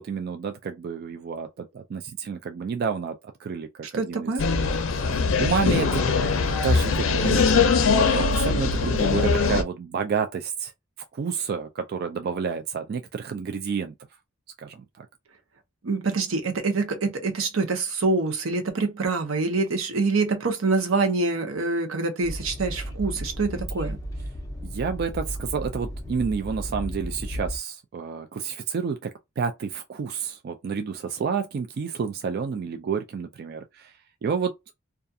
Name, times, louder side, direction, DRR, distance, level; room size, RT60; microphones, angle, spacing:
voice 1, 0.0-4.3 4.9-6.0 6.6-10.7 11.1-13.9 14.6-15.1 24.6-34.5, right 6 dB, 50° right, 0.3 m, -30 dB
voice 2, 3.8-4.4 15.8-24.0, right 3 dB, 80° right, 0.7 m, -25 dB
sound 1, 4.4-9.6, left 4 dB, 70° left, 0.5 m, -21 dB
Train, 22.2-27.6, equal, 15° left, 0.5 m, -34 dB
2.4 x 2.3 x 2.6 m
head